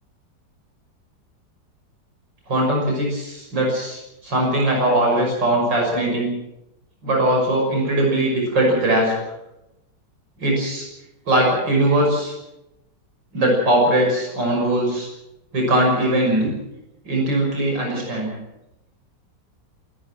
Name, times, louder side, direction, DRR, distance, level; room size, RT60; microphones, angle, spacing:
voice 1, 2.5-6.3 7.0-9.1 10.4-10.9 11.3-12.3 13.3-15.1 15.5-16.5 17.0-18.3, right 1 dB, 85° right, -1 dB, 6.8 m, -20 dB
27.0 x 13.0 x 7.7 m, 0.92 s
omnidirectional pair, 1.9 m